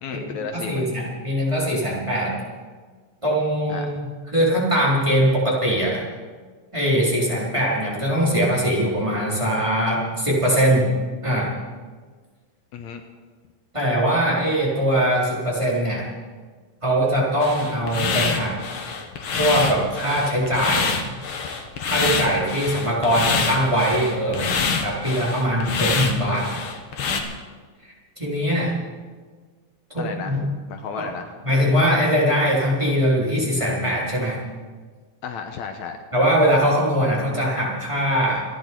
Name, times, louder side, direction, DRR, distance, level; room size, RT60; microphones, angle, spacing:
voice 1, 0.0-0.9 3.7-4.0 12.7-13.0 30.0-30.4 30.7-31.3 35.2-36.0, left 6 dB, 75° left, 6 dB, 2.2 m, -33 dB
voice 2, 0.5-2.3 3.2-3.9 4.3-6.0 6.7-10.9 11.2-11.5 13.7-16.1 16.8-18.6 19.4-20.9 21.9-24.5 24.8-26.5 27.8-27.9 28.2-28.7 29.9-30.4 31.0-31.1 31.4-34.4 36.1-38.4, equal, 10° right, -5 dB, 3.8 m, -21 dB
sound 1, 17.4-27.2, left 5 dB, 55° left, 2.0 m, -26 dB
28.0 x 10.5 x 4.5 m, 1.5 s
omnidirectional pair, 3.4 m